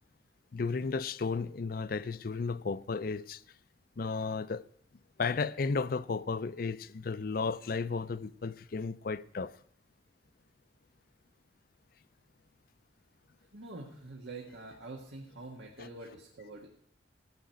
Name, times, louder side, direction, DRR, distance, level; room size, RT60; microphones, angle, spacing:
voice 1, 0.5-3.4 4.0-4.6 5.2-9.5 15.8-15.9, left 4 dB, 50° left, 0.5 m, -34 dB
voice 2, 13.5-16.7, right 2 dB, 85° right, 1.6 m, -46 dB
15.5 x 6.1 x 9.2 m
head